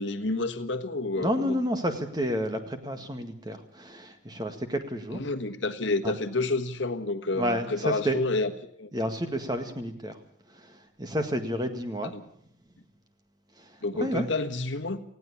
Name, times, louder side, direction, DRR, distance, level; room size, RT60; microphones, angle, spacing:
voice 1, 0.0-1.6 5.1-8.5 8.8-8.9 12.0-12.1 13.8-15.0, left 2 dB, 70° left, 8 dB, 1.5 m, -29 dB
voice 2, 1.2-5.2 6.0-6.2 7.3-8.2 8.9-10.2 10.5-12.1 13.6-14.3, equal, 20° right, 7 dB, 1.8 m, -30 dB
19.5 x 15.5 x 8.5 m, 0.65 s
head